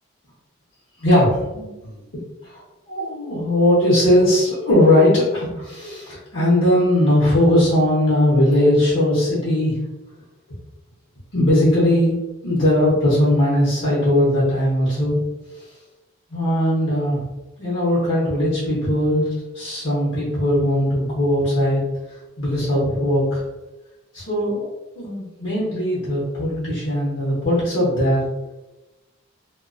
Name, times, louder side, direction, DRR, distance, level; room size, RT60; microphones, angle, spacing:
voice 1, 1.0-2.0 2.4-2.6 2.9-9.8 11.3-12.2 12.4-15.2 15.6-15.7 16.3-17.2 17.6-21.8 22.4-23.4 24.1-24.7 25.0-28.2, left 1 dB, 60° left, -9 dB, 0.8 m, -19 dB
2.3 x 2.2 x 2.4 m, 1.1 s
head